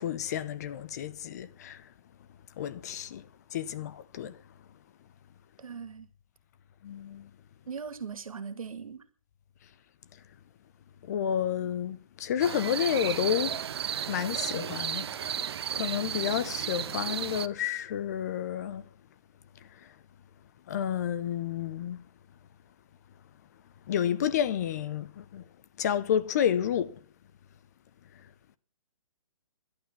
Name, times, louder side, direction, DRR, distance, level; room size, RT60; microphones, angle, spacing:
voice 1, 0.0-1.9 2.6-4.4 6.8-7.3 11.0-13.6 14.1-15.4 15.7-18.9 19.6-19.9 20.7-22.0 23.9-25.4 25.8-27.0, left 9 dB, 30° left, 0.7 m, -30 dB
voice 2, 5.6-6.1 7.7-9.0, right 6 dB, 80° right, 2.2 m, -39 dB
sound 1, 12.4-17.5, right 9 dB, 50° right, 0.7 m, -34 dB
11.5 x 11.0 x 7.3 m
hypercardioid pair, 165°, 17 cm